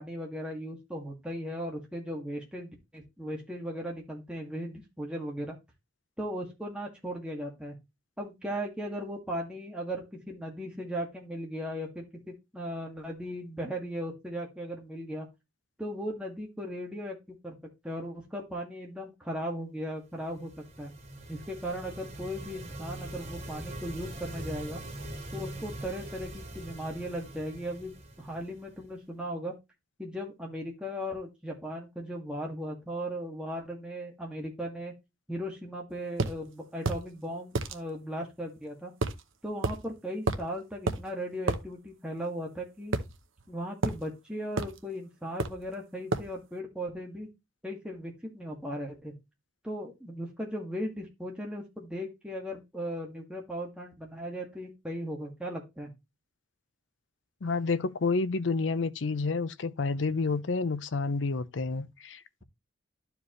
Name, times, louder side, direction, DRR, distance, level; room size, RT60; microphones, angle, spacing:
voice 1, 0.0-5.6 6.2-7.8 8.2-15.3 15.8-17.6 17.8-20.5 20.8-20.9 21.3-24.8 25.3-29.6 30.0-34.9 35.3-38.9 39.4-43.0 43.5-47.3 47.6-49.1 49.6-55.9, equal, 5° right, 2.1 m, -37 dB
sound 1, 20.2-28.9, right 1 dB, 35° right, 2.2 m, -42 dB
sound 2, 36.2-36.4 36.9-37.1 37.6-37.8 39.0-39.2 39.6-39.8 40.3-40.5 40.9-41.0 41.5-41.6 42.9-43.5 43.8-44.0 44.6-44.8 45.4-45.7 46.1-46.3, right 3 dB, 80° right, 0.9 m, -30 dB
voice 2, 57.4-62.4, left 4 dB, 65° left, 0.6 m, -29 dB
11.5 x 4.9 x 3.1 m
head